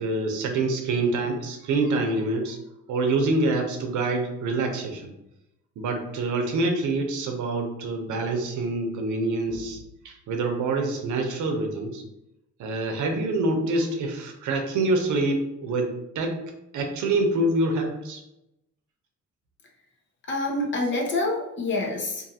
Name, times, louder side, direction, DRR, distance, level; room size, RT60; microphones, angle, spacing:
voice 1, 0.0-2.6 2.9-5.1 5.8-9.8 10.0-12.0 12.6-16.4 16.7-18.2, right 2 dB, 75° right, 3 dB, 0.7 m, -26 dB
voice 2, 20.3-22.3, left 2 dB, 40° left, 0 dB, 0.7 m, -27 dB
2.6 x 2.4 x 2.7 m, 0.87 s
cardioid pair, 90°, 30 cm